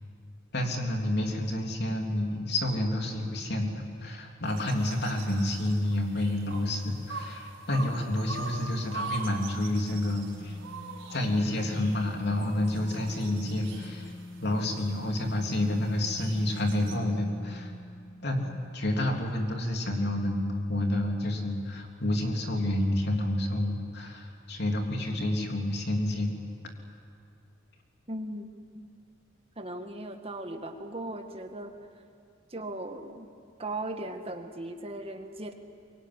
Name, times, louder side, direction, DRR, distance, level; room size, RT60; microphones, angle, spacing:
voice 1, 0.5-10.6 11.1-14.1 14.4-17.7 18.2-18.4 18.7-26.3, left 1 dB, 55° left, 2 dB, 3.3 m, -29 dB
sound 1, 4.5-17.0, right 4 dB, 70° right, 4.5 m, -43 dB
sound 2, 9.0-18.6, left 1 dB, 10° left, 2.5 m, -47 dB
voice 2, 28.1-28.5 28.7-28.9 29.6-31.8 32.5-33.3 33.6-35.5, right 1 dB, 30° right, 5 dB, 1.8 m, -38 dB
24.0 x 23.0 x 9.7 m, 2.3 s
head